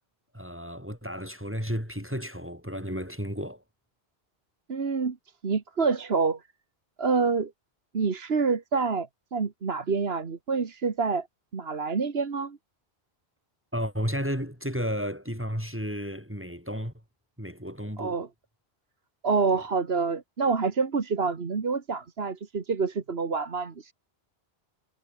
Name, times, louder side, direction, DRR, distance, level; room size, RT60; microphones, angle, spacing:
voice 1, 0.3-3.6 13.7-16.9 17.4-18.2, equal, 10° right, 7.0 m, -33 dB
voice 2, 4.7-5.2 5.4-6.4 7.0-7.5 7.9-11.3 11.5-12.6 18.0-18.3 19.2-23.9, right 4 dB, 70° right, 1.8 m, -27 dB
omnidirectional pair, 1.1 m